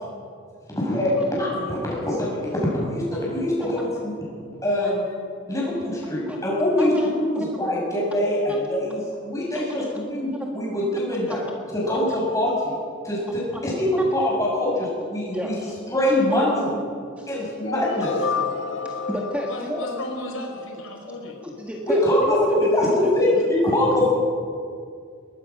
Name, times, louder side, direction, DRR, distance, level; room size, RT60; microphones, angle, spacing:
voice 1, 0.7-4.1 4.6-5.0 5.5-11.4 11.7-12.8 13.0-15.5 15.9-16.7 17.3-18.2 21.9-24.1, left 1 dB, 15° left, -5 dB, 7.3 m, -23 dB
voice 2, 6.8-7.1 7.3-7.5 8.5-8.6 9.5-9.9 11.0-11.5 12.1-12.2 13.3-13.6 15.3-15.7 16.3-16.4 17.2-17.3 18.8-19.9 21.1-23.1, equal, 5° right, 0 dB, 1.6 m, -33 dB
sound 1, 17.6-21.5, left 4 dB, 65° left, 1.2 m, -30 dB
voice 3, 19.5-21.3, left 1 dB, 90° left, 1 dB, 4.8 m, -35 dB
22.0 x 20.5 x 6.2 m, 2.3 s
head